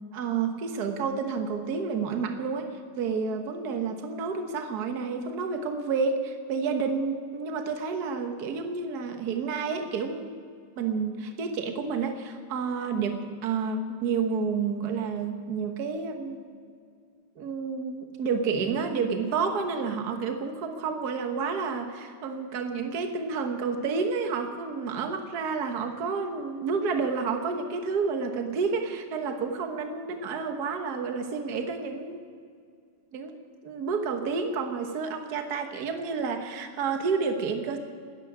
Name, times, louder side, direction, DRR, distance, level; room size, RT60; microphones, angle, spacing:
voice 1, 0.1-2.7 3.0-10.3 10.8-16.4 17.4-32.2 33.1-33.4 33.6-37.8, right 5 dB, 50° right, 6 dB, 1.6 m, -30 dB
12.5 x 11.0 x 9.8 m, 2.2 s
omnidirectional pair, 2.3 m